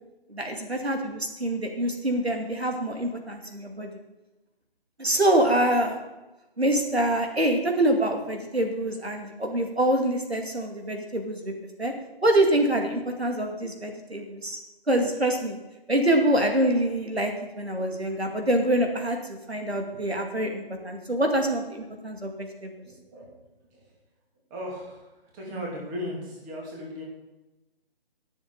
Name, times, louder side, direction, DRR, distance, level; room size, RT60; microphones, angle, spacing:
voice 1, 0.3-3.9 5.0-6.0 6.6-11.5 11.8-11.9 12.2-14.6 14.9-15.6 15.9-19.2 19.5-22.7, right 1 dB, 90° right, 3 dB, 2.3 m, -25 dB
voice 2, 22.8-23.3 23.7-23.9 24.5-25.0 25.3-27.0, left 1 dB, 20° right, -2 dB, 2.7 m, -37 dB
20.0 x 7.1 x 4.0 m, 1.1 s
figure-of-eight pair, 150°, 31 cm